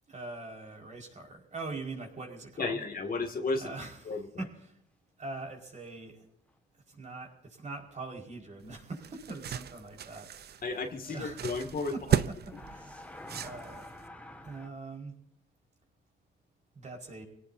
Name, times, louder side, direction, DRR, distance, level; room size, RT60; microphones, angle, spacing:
voice 1, 0.1-2.8 3.6-4.8 5.2-6.2 6.9-10.6 11.0-11.5 11.9-13.1 13.4-13.9 14.4-15.1 16.8-17.2, right 3 dB, 35° right, 1 dB, 5.3 m, -43 dB
voice 2, 2.6-3.7 4.1-4.2 10.6-11.9, left 3 dB, 45° left, 4 dB, 2.4 m, -33 dB
sound 1, 5.7-5.9 6.5-6.6 11.0-11.2 12.4-14.7, left 1 dB, 5° left, 1.9 m, -47 dB
sound 2, 8.6-14.1, right 9 dB, 55° right, 0.7 m, -35 dB
24.5 x 18.0 x 2.8 m, 0.73 s
cardioid pair, 90°, 20 cm